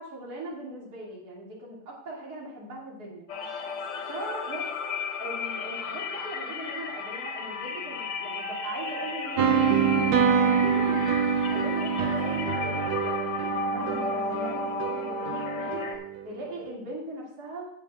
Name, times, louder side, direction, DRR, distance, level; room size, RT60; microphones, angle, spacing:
voice 1, 0.0-3.3 4.1-4.7 5.2-10.1 10.4-11.1 11.5-15.8 16.2-17.7, right 2 dB, 45° right, -4 dB, 2.9 m, -40 dB
sound 1, 3.3-16.0, left 4 dB, 85° left, 2.0 m, -33 dB
sound 2, 9.4-16.3, right 7 dB, 70° right, 1.2 m, -26 dB
17.5 x 8.2 x 2.4 m, 0.74 s
omnidirectional pair, 2.4 m